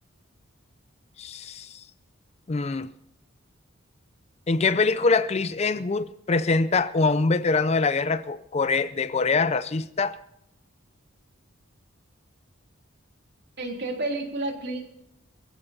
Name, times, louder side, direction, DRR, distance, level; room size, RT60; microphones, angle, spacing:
voice 1, 1.2-1.8 2.5-2.9 4.5-10.2, left 4 dB, 30° left, 0.4 m, -24 dB
voice 2, 13.6-14.8, right 2 dB, 55° right, 3.3 m, -30 dB
23.0 x 15.0 x 2.8 m
head